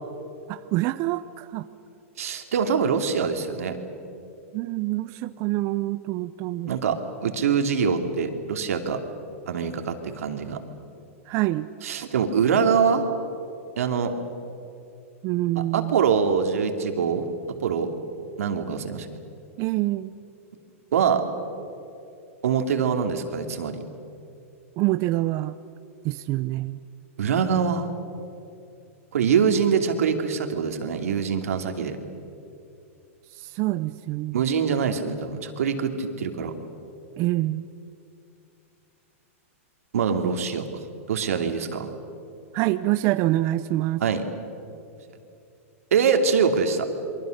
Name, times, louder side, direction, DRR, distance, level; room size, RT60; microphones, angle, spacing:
voice 1, 0.5-1.7 4.5-6.7 11.3-11.7 15.2-16.0 19.6-20.1 24.8-25.6 26.0-26.8 33.3-34.4 37.2-37.7 42.5-44.0, right 17 dB, 35° right, 13 dB, 0.6 m, -26 dB
voice 2, 2.2-3.8 6.7-9.0 9.5-10.6 11.8-13.1 13.8-14.1 15.6-17.2 17.6-17.9 18.4-19.1 20.9-21.2 22.4-23.8 27.2-27.9 29.1-32.0 34.3-36.5 39.9-40.6 41.1-41.9 44.0-44.2 45.9-46.9, right 6 dB, 80° right, 5 dB, 2.8 m, -24 dB
28.0 x 23.5 x 6.6 m, 2.6 s
hypercardioid pair, 140°, 8 cm